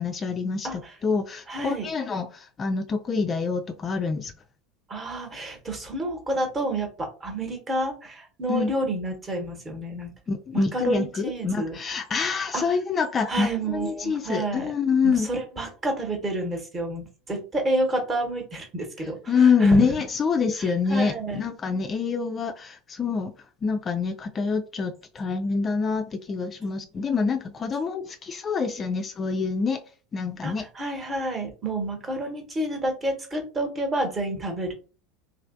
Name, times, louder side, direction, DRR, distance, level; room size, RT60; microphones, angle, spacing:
voice 1, 0.0-4.3 8.5-8.7 10.3-15.3 19.3-23.3 23.6-29.8 30.1-30.6, left 5 dB, 25° left, 7 dB, 0.3 m, -26 dB
voice 2, 0.6-0.9 1.5-1.9 4.9-10.1 10.5-11.7 12.5-12.6 13.3-14.7 15.0-19.9 20.6-21.4 30.4-34.7, right 1 dB, 25° right, 3 dB, 1.0 m, -29 dB
3.1 x 2.6 x 2.5 m, 0.36 s
figure-of-eight pair, 75°, 0 cm